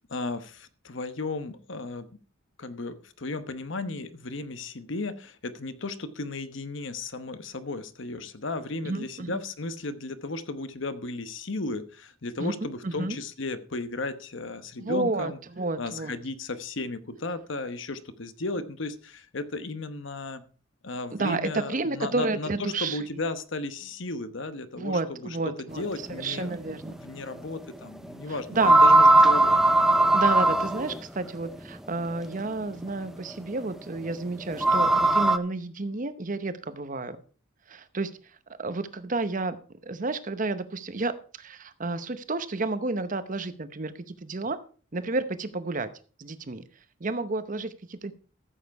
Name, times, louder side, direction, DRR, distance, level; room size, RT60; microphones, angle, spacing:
voice 1, 0.1-2.1 2.6-15.4 15.8-20.4 20.8-25.0 25.6-29.5, left 2 dB, 65° left, 12 dB, 1.0 m, -35 dB
voice 2, 8.8-9.4 12.4-12.5 12.8-13.2 14.8-16.2 21.1-23.2 24.8-25.8 26.1-27.0 28.3-28.8 30.1-37.2 37.7-39.6 39.8-44.6 44.9-45.9 46.2-46.6 47.0-48.1, right 3 dB, 40° right, 12 dB, 0.8 m, -31 dB
sound 1, 26.8-26.9 28.6-31.0 32.8-32.9 34.5-35.4, right 2 dB, ahead, 0.5 m, -18 dB
14.0 x 7.5 x 4.7 m, 0.39 s
head